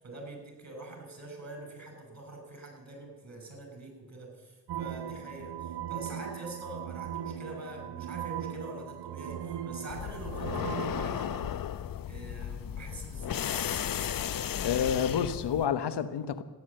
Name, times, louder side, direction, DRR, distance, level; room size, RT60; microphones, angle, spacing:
voice 1, 0.0-11.4 12.1-13.6, right 2 dB, 40° right, 7.0 m, -44 dB
sound 1, 4.7-11.5, right 9 dB, 80° right, 1.2 m, -39 dB
sound 2, 9.9-15.7, left 9 dB, 55° left, 0.7 m, -34 dB
voice 2, 14.6-16.4, left 8 dB, 80° left, 1.1 m, -29 dB
14.0 x 11.0 x 8.8 m
cardioid pair, 50°, 40 cm